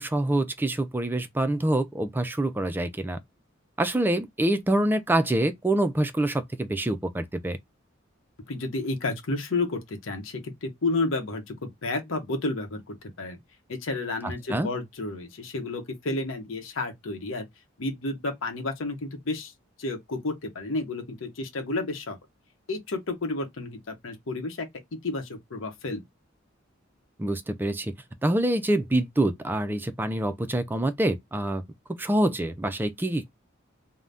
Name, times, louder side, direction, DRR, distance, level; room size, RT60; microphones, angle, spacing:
voice 1, 0.0-3.2 3.8-7.6 14.5-14.7 27.2-27.9 28.2-31.6 32.0-33.3, right 1 dB, 10° right, 0.3 m, -26 dB
voice 2, 8.5-13.4 13.7-17.4 17.8-19.5 19.8-22.2 22.7-24.7 24.9-26.0, left 2 dB, 80° left, 0.8 m, -31 dB
2.6 x 2.1 x 3.3 m
head